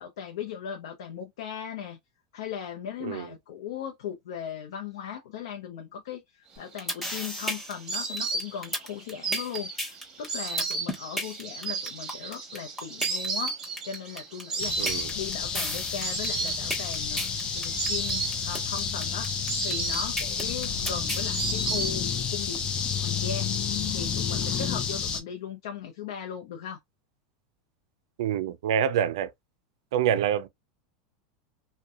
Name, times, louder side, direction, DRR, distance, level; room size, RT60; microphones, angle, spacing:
voice 1, 0.0-2.0 2.3-13.6 13.8-23.5 23.9-26.8, left 8 dB, 80° left, 0.6 m, -38 dB
sound 1, 6.6-21.3, equal, 5° left, 1.1 m, -33 dB
Insect, 6.7-22.4 22.7-23.5, right 4 dB, 25° right, 1.1 m, -34 dB
sound 2, 14.6-25.2, left 6 dB, 35° left, 0.6 m, -30 dB
voice 2, 14.8-15.1 28.2-29.3 29.9-30.5, right 9 dB, 80° right, 0.4 m, -26 dB
2.6 x 2.2 x 2.3 m
supercardioid pair, 125°, 3 cm